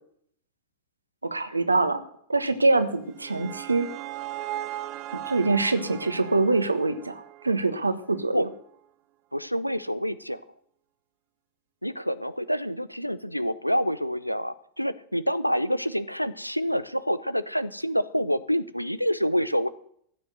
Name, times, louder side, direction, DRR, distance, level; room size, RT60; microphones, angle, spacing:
voice 1, 1.2-2.0 2.3-3.9 5.1-8.5, right 3 dB, 80° right, 10 dB, 1.3 m, -24 dB
sound 1, 2.8-8.0, right 13 dB, 40° right, 0.8 m, -38 dB
voice 2, 9.3-10.4 11.8-19.7, equal, 90° left, 16 dB, 0.6 m, -27 dB
15.0 x 6.5 x 7.9 m, 0.66 s
figure-of-eight pair, 90°, 0 cm